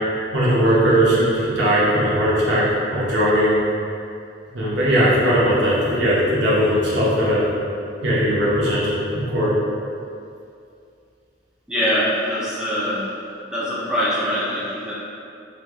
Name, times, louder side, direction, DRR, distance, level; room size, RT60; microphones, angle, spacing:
voice 1, 0.3-3.6 4.5-7.4 8.0-9.5, equal, 65° right, -7 dB, 0.8 m, -19 dB
voice 2, 11.7-13.0 13.5-14.9, equal, 5° right, -10 dB, 0.5 m, -23 dB
3.3 x 2.3 x 3.5 m, 2.5 s
head